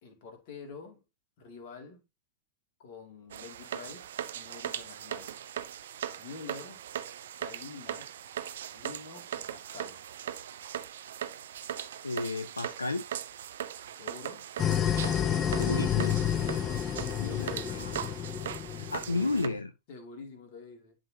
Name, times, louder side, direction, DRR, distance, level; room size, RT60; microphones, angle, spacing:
voice 1, 0.0-1.0 1.4-2.0 2.8-5.4 6.2-6.8 7.4-8.1 8.7-10.0 13.9-14.4 16.6-17.8 18.8-19.4 19.9-21.0, left 4 dB, 50° left, 2.4 m, -46 dB
sound 1, 3.3-19.5, right 10 dB, 60° right, 0.6 m, -39 dB
voice 2, 12.0-13.0 15.5-16.2 17.7-17.9 18.7-19.7, left 3 dB, 80° left, 0.4 m, -32 dB
sound 2, 14.6-19.4, left 9 dB, 25° left, 0.5 m, -30 dB
11.5 x 3.9 x 2.8 m
figure-of-eight pair, 90°, 0 cm